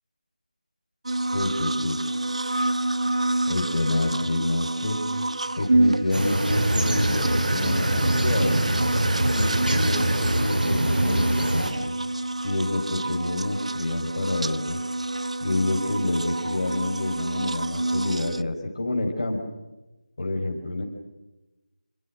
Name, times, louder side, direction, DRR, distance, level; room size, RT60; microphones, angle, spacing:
sound 1, 1.0-18.4, right 2 dB, 45° right, 0.8 m, -28 dB
voice 1, 1.3-2.0 3.5-5.0 5.6-8.5 9.3-11.7 12.4-14.8 15.4-19.4 20.2-20.8, left 2 dB, 35° left, 2 dB, 4.8 m, -28 dB
sound 2, 6.1-11.7, right 1 dB, 70° right, 5.9 m, -24 dB
27.5 x 22.5 x 7.7 m, 1.0 s
figure-of-eight pair, 180°, 5 cm